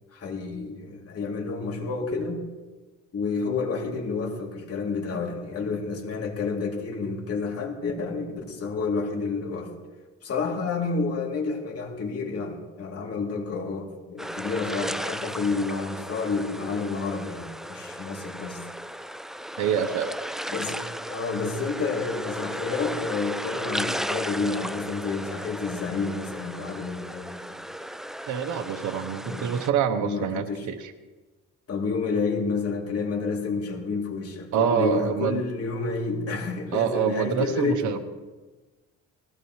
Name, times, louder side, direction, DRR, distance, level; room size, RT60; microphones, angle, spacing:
voice 1, 0.1-2.4 3.1-9.7 10.2-18.6 20.5-27.6 29.2-29.5 30.0-30.7 31.7-38.0, left 4 dB, 50° left, 0 dB, 3.0 m, -30 dB
sound 1, 14.2-29.7, equal, ahead, 0.5 m, -35 dB
voice 2, 19.6-20.1 28.3-30.9 34.5-35.4 36.7-38.0, right 8 dB, 75° right, 6 dB, 1.0 m, -26 dB
19.0 x 15.5 x 3.2 m, 1.2 s
cardioid pair, 90°, 30 cm